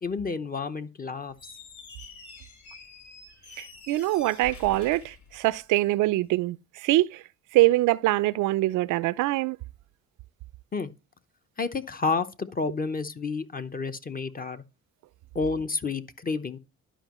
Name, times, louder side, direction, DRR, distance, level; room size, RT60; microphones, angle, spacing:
voice 1, 0.0-1.3 10.7-10.9 11.6-14.6 15.3-16.6, left 4 dB, 30° left, 0.8 m, -30 dB
Squeak, 1.3-6.0, left 4 dB, 70° left, 2.8 m, -47 dB
voice 2, 3.6-7.2 7.5-9.6, right 17 dB, 80° right, 0.5 m, -24 dB
11.5 x 5.1 x 3.0 m
cardioid pair, 90°, 30 cm